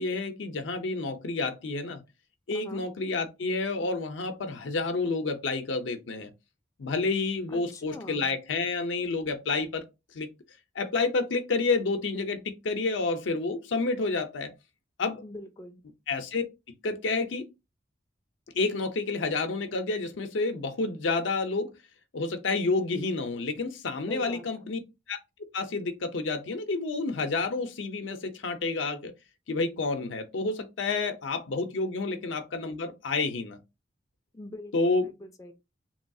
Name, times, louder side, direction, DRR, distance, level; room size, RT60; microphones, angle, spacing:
voice 1, 0.0-2.0 2.5-6.3 6.8-9.8 10.1-10.3 10.8-14.5 15.0-15.2 16.1-16.4 16.8-17.4 18.5-21.7 22.1-24.8 25.1-25.2 25.5-29.1 29.5-33.6 34.7-35.1, left 3 dB, 80° left, 0.6 m, -29 dB
voice 2, 2.5-2.8 7.5-8.3 15.2-15.8 24.1-24.7 34.3-35.5, left 1 dB, 15° left, 0.3 m, -43 dB
3.0 x 2.3 x 2.6 m
head